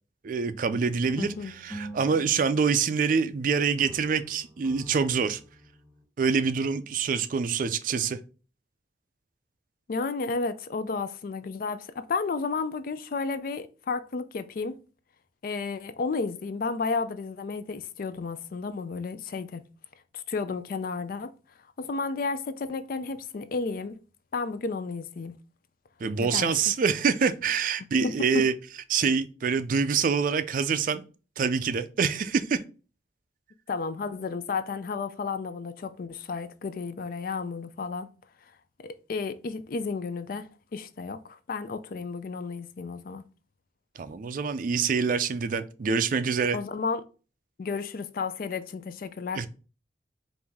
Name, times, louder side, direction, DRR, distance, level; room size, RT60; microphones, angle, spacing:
voice 1, 0.2-5.4 6.2-8.2 26.0-28.5 28.9-31.0 31.4-32.6 44.0-46.6 49.3-49.5, right 5 dB, 50° right, 0.4 m, -26 dB
sound 1, 1.0-3.4 3.8-6.0, right 1 dB, 5° left, 1.6 m, -46 dB
voice 2, 1.2-1.5 9.9-14.8 15.4-19.6 20.1-21.3 21.8-23.9 24.3-25.3 26.2-26.5 28.0-28.4 33.7-38.1 38.8-43.2 46.5-47.0 47.6-49.5, left 4 dB, 55° left, 0.4 m, -32 dB
4.8 x 2.6 x 3.5 m
head